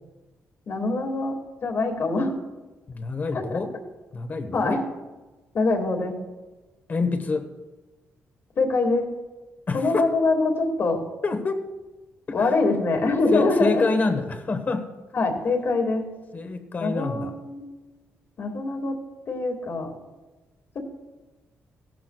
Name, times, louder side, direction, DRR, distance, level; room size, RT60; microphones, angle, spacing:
voice 1, 0.7-1.4 1.6-2.3 3.3-3.6 4.5-4.8 5.5-6.1 8.6-9.1 9.7-11.0 12.3-13.9 15.1-16.1 16.8-17.6 18.4-19.0 19.3-19.9, left 3 dB, 50° left, 3 dB, 2.1 m, -24 dB
voice 2, 2.9-3.7 4.1-4.8 6.9-7.5 9.7-10.1 11.2-11.7 12.3-12.5 13.3-14.9 16.3-17.3, left 3 dB, 35° left, 7 dB, 1.1 m, -27 dB
16.5 x 12.0 x 2.3 m, 1.2 s
cardioid pair, 140°, 5 cm